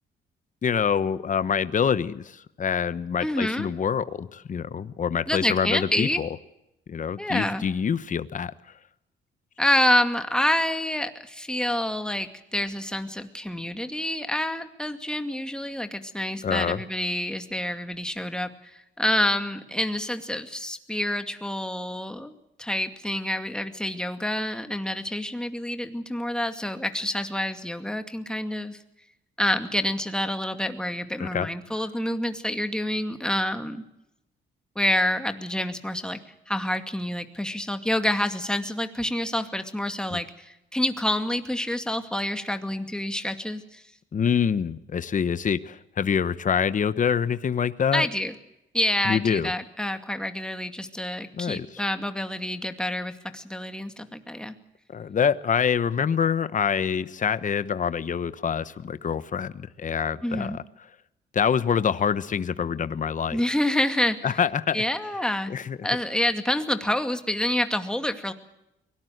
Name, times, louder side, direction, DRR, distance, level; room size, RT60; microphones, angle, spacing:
voice 1, 0.6-6.3 6.9-8.5 16.4-16.8 31.2-31.5 40.1-40.2 44.1-48.1 49.0-49.5 51.4-51.7 54.9-60.6 61.3-63.4 64.2-64.8 65.5-65.8, left 7 dB, 40° left, 14 dB, 1.0 m, -26 dB
voice 2, 3.2-3.7 5.3-6.2 7.2-7.7 9.6-22.3 22.6-28.8 29.4-33.8 34.8-36.2 36.5-43.8 47.9-48.3 48.7-54.5 60.2-60.6 63.3-64.2 64.7-65.5 65.8-68.3, left 1 dB, 5° left, 7 dB, 2.3 m, -27 dB
23.5 x 18.5 x 8.0 m, 0.86 s
cardioid pair, 90°, 20 cm